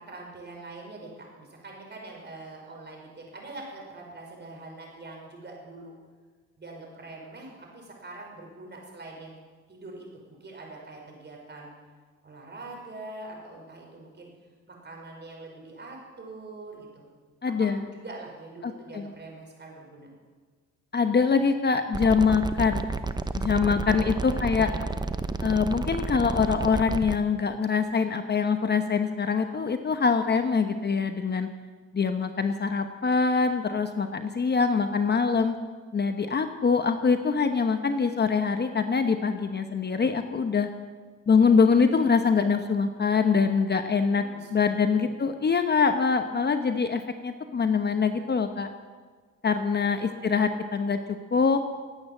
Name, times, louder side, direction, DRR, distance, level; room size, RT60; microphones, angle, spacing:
voice 1, 0.0-5.9 6.6-9.4 9.7-11.7 12.2-14.3 14.7-17.0 17.6-20.1 23.9-25.0 44.0-44.5 45.0-45.1 49.9-50.3, right 2 dB, 35° right, 0 dB, 5.5 m, -44 dB
voice 2, 17.4-17.9 18.6-19.1 20.9-22.8 23.3-24.7 25.4-31.5 31.9-35.5 35.9-40.7 41.3-44.2 44.5-48.7 49.4-51.0 51.3-51.6, left 5 dB, 35° left, 7 dB, 1.0 m, -24 dB
sound 1, 21.9-27.2, right 3 dB, 15° right, 0.7 m, -31 dB
18.0 x 8.8 x 7.4 m, 1.5 s
cardioid pair, 90°, 30 cm